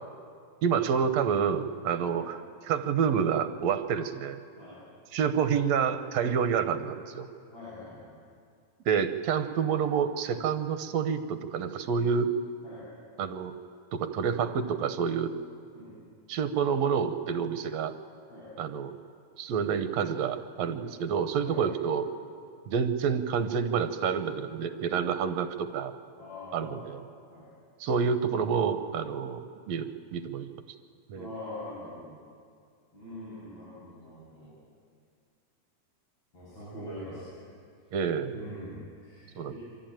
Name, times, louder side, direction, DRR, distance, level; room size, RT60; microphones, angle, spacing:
voice 1, 0.6-4.4 5.1-7.3 8.9-12.3 13.2-13.6 13.9-15.4 16.3-17.9 18.6-18.9 19.4-22.1 22.7-25.9 26.5-27.1 27.8-30.5 31.1-31.3 37.9-38.4 39.4-39.5, right 7 dB, 70° right, 9 dB, 2.0 m, -28 dB
voice 2, 7.5-8.1 12.6-12.9 15.7-15.9 18.3-18.5 20.7-20.9 21.4-21.6 24.9-25.0 26.2-27.0 27.3-27.5 31.1-32.2 32.9-34.5 36.3-37.4 38.3-39.6, left 1 dB, 65° left, -11 dB, 8.9 m, -43 dB
25.0 x 14.5 x 8.9 m, 2.2 s
omnidirectional pair, 3.4 m